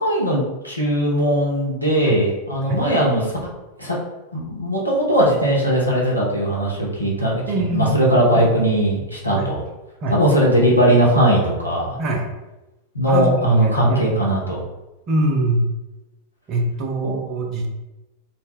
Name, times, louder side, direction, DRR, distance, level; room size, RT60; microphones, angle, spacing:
voice 1, 0.0-3.4 3.8-4.0 4.3-9.6 10.1-12.0 12.9-14.6 17.0-17.1, right 1 dB, 90° left, -4 dB, 0.6 m, -19 dB
voice 2, 7.5-8.5 9.3-9.5 10.0-10.2 12.0-12.3 13.1-14.1 15.1-15.7 16.5-17.7, right 1 dB, 35° right, 1 dB, 0.5 m, -23 dB
2.0 x 2.0 x 3.5 m, 1.0 s
figure-of-eight pair, 90°, 0 cm